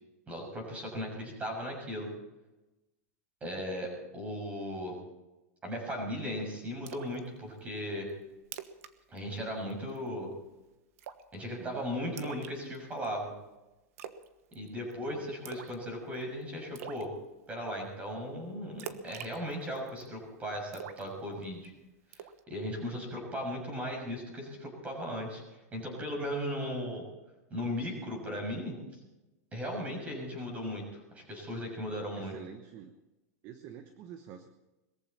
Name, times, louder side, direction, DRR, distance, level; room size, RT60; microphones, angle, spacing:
voice 1, 0.3-2.1 3.4-5.0 5.6-8.1 9.1-10.3 11.3-13.3 14.5-17.1 17.5-21.7 22.1-25.4 25.7-27.0 27.5-28.8 29.5-32.3, equal, 15° right, 1 dB, 6.6 m, -37 dB
Splash splatter, 6.9-7.2 7.6-7.7 8.1-8.2 8.4-8.9 9.2-9.4 9.7-10.1 11.0-11.4 12.2-13.1 14.0-14.3 14.5-14.9 15.5-15.8 16.1-16.2 16.8-17.1 18.8-20.1 20.7-21.7 22.1-22.4, right 9 dB, 60° right, 1.3 m, -44 dB
voice 2, 11.5-11.9 15.0-15.3 26.8-27.0 32.1-32.9 33.4-34.5, right 9 dB, 35° right, 8 dB, 1.1 m, -48 dB
21.5 x 14.5 x 4.3 m, 1.0 s
supercardioid pair, 155°, 9 cm